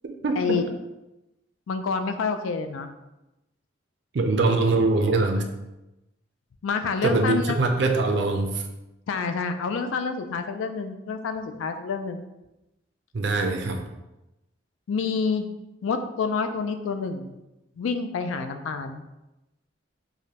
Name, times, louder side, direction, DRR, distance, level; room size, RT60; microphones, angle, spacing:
voice 1, 0.2-0.6 4.1-5.5 7.0-8.6 13.1-13.8, right 3 dB, 60° right, 4 dB, 0.4 m, -23 dB
voice 2, 1.7-2.9 6.6-7.6 9.1-12.2 14.9-15.5 15.8-17.4 17.8-19.0, left 5 dB, 80° left, 8 dB, 0.4 m, -28 dB
4.8 x 2.2 x 2.8 m, 0.96 s
head